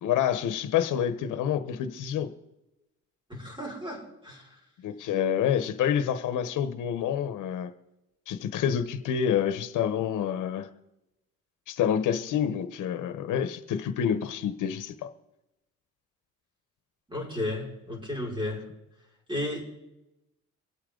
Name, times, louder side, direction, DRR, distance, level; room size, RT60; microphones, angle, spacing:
voice 1, 0.0-2.3 4.8-7.7 8.3-10.7 11.7-15.1, left 9 dB, 85° left, 1.2 m, -28 dB
voice 2, 3.3-4.5 17.1-18.6 19.3-19.6, left 1 dB, 15° right, 6.0 m, -33 dB
25.0 x 8.6 x 4.0 m
cardioid pair, 90°, 30 cm